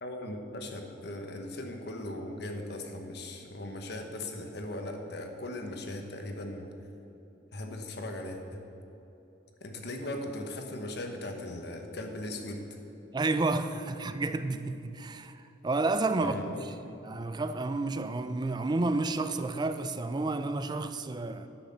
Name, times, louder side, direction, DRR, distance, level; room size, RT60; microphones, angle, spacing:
voice 1, 0.0-6.7 7.5-8.6 9.6-12.7 16.2-17.0, left 1 dB, 60° left, 1.1 m, -38 dB
voice 2, 13.1-16.6 17.0-21.5, right 3 dB, 25° right, 0.4 m, -31 dB
9.9 x 6.2 x 7.0 m
head